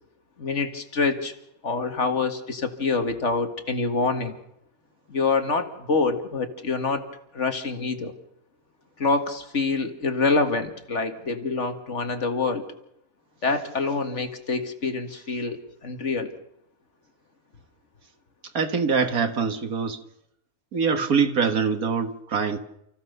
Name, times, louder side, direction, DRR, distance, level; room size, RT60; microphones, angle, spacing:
voice 1, 0.4-1.3 1.6-4.4 5.1-7.1 7.3-8.1 9.0-12.6 13.4-16.3, left 4 dB, 55° left, 2.1 m, -26 dB
voice 2, 18.5-20.0 20.7-22.6, right 5 dB, 75° right, 2.1 m, -24 dB
29.5 x 15.5 x 6.7 m
omnidirectional pair, 1.5 m